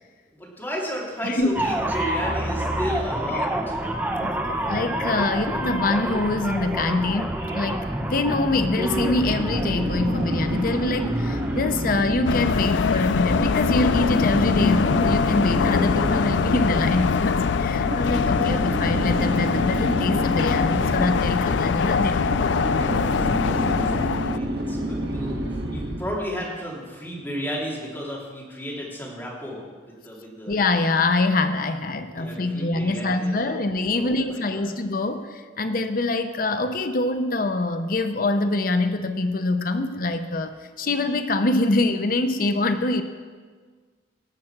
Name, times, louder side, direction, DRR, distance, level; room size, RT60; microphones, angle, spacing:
voice 1, 0.3-3.8 22.9-30.5 32.1-33.6 33.9-34.6, equal, 10° left, -4 dB, 3.1 m, -34 dB
sound 1, 1.6-12.0, right 1 dB, 10° right, 0.8 m, -28 dB
voice 2, 4.2-22.2 30.5-43.0, left 2 dB, 50° left, 8 dB, 0.7 m, -24 dB
sound 2, 8.6-26.2, right 1 dB, 70° right, 1.8 m, -29 dB
sound 3, 12.2-24.4, left 5 dB, 90° left, 0.4 m, -23 dB
18.5 x 7.5 x 5.9 m, 1.5 s
head